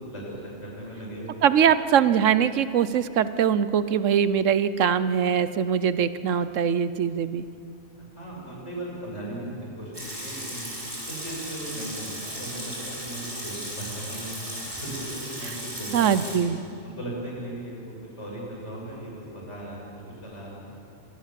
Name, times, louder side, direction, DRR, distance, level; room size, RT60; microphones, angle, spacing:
voice 1, 0.1-1.4 8.0-9.5 9.8-10.7 11.1-14.3 14.7-16.5 16.8-20.7, right 1 dB, 65° left, -3 dB, 7.2 m, -37 dB
voice 2, 1.4-7.4 15.9-16.6, right 8 dB, 80° right, 14 dB, 1.1 m, -22 dB
Water tap faucet / Sink (filling or washing) / Liquid, 9.9-16.4, equal, 20° right, 5.6 m, -36 dB
25.5 x 19.0 x 7.6 m, 2.6 s
omnidirectional pair, 1.3 m